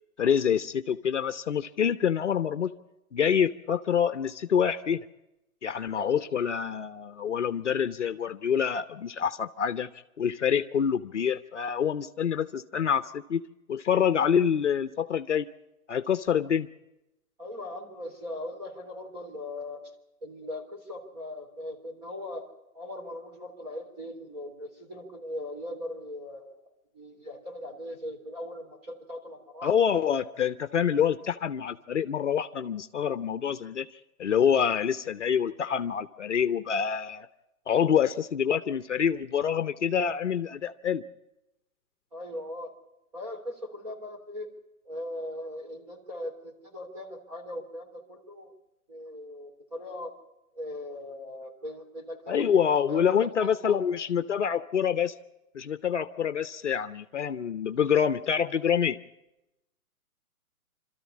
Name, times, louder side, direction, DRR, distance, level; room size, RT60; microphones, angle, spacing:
voice 1, 0.2-2.7 3.1-5.1 5.6-9.9 10.2-13.4 13.7-15.5 15.9-16.7 29.6-33.9 34.2-37.3 37.7-41.0 52.3-55.1 55.5-59.0, left 8 dB, 50° left, 12 dB, 0.8 m, -26 dB
voice 2, 17.4-19.9 20.2-22.5 22.7-26.6 26.9-29.7 42.1-42.7 43.1-44.5 44.8-48.5 48.9-50.1 50.5-53.8, left 1 dB, 25° right, 2 dB, 3.4 m, -39 dB
26.5 x 13.5 x 8.5 m, 0.92 s
hypercardioid pair, 175°, 45 cm